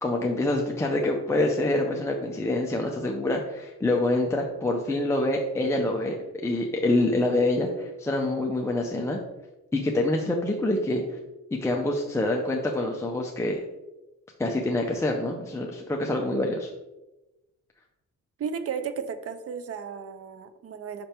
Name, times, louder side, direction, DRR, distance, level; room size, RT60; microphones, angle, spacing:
voice 1, 0.0-6.2 6.4-9.2 9.7-11.2 11.6-13.6 14.4-16.7, left 2 dB, 10° left, 0 dB, 0.5 m, -26 dB
voice 2, 18.4-21.1, right 6 dB, 50° right, 10 dB, 0.6 m, -34 dB
5.6 x 5.2 x 4.3 m, 1.0 s
cardioid pair, 150°, 31 cm